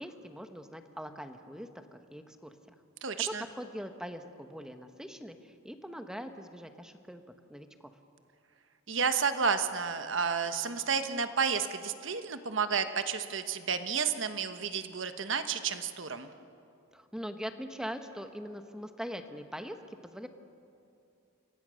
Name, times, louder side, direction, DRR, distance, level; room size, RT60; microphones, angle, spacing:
voice 1, 0.0-2.8 3.3-7.2 7.5-7.9 16.9-19.8 20.0-20.3, equal, 5° right, 7 dB, 1.1 m, -42 dB
voice 2, 3.0-3.4 8.9-16.3, right 6 dB, 65° right, 9 dB, 1.3 m, -31 dB
29.5 x 22.5 x 6.4 m, 2.5 s
head